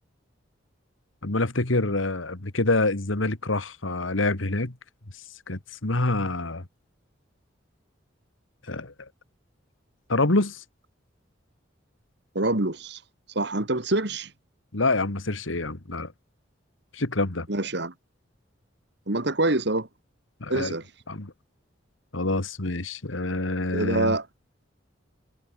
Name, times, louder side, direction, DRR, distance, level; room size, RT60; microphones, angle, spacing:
voice 1, 1.2-4.7 5.5-6.6 8.7-8.9 10.1-10.6 14.7-16.1 16.9-17.5 20.4-20.7 21.1-21.3 22.1-24.2, left 2 dB, 85° left, 2.1 m, -26 dB
voice 2, 12.3-13.0 13.4-14.3 17.5-17.9 19.1-19.9 20.5-20.8 23.7-24.3, right 2 dB, 60° right, 2.3 m, -25 dB
head